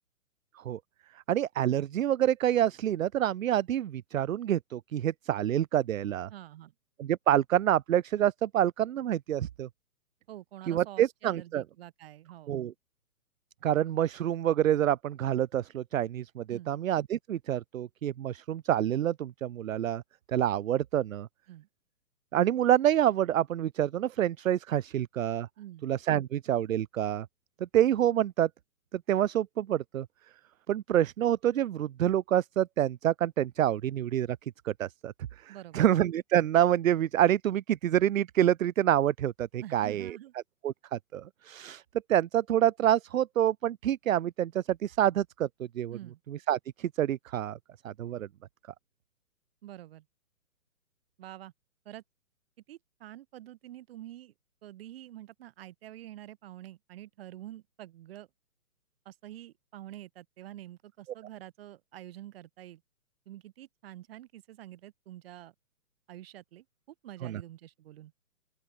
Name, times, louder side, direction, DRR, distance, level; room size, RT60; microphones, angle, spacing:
voice 1, 1.3-6.3 7.0-9.7 10.7-11.6 12.5-12.7 13.6-20.0 20.3-21.3 22.3-25.5 25.8-27.3 27.7-28.5 29.1-30.1 30.7-34.4 34.6-35.1 35.4-40.2 40.6-41.8 42.1-45.5 45.7-46.0 46.3-47.6 47.8-48.3 67.2-67.4, right 11 dB, 60° right, 0.7 m, -27 dB
voice 2, 6.3-6.7 10.3-12.5 16.5-16.8 21.5-21.7 25.6-25.9 35.5-35.9 39.6-40.3 45.9-46.2 49.6-50.0 51.2-51.5 51.8-52.0 52.7-54.3 54.6-58.3 59.0-62.8 63.2-65.5 66.1-68.1, right 13 dB, 40° right, 5.0 m, -47 dB
open air
hypercardioid pair, 145°, 45 cm